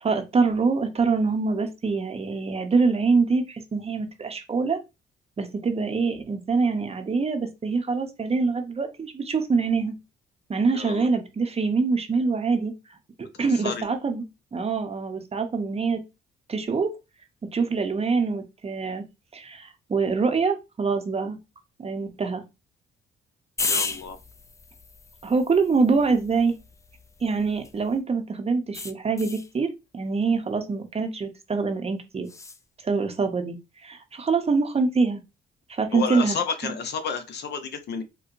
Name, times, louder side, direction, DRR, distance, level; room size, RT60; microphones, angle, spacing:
voice 1, 0.0-4.8 5.4-9.9 10.5-12.7 13.4-14.2 14.5-16.0 16.5-16.9 17.5-19.0 19.3-21.4 21.8-22.4 25.2-26.6 27.2-32.3 32.8-33.6 33.8-35.2 35.7-36.4 36.6-36.7, right 4 dB, 30° right, 0.7 m, -25 dB
voice 2, 10.7-11.1 13.4-13.9 23.6-24.2 35.9-38.0, left 5 dB, 60° left, 0.7 m, -31 dB
sound 1, 23.6-28.0 28.7-29.5 32.2-32.6, left 3 dB, 15° left, 0.3 m, -34 dB
4.4 x 2.1 x 2.5 m
cardioid pair, 90°, 20 cm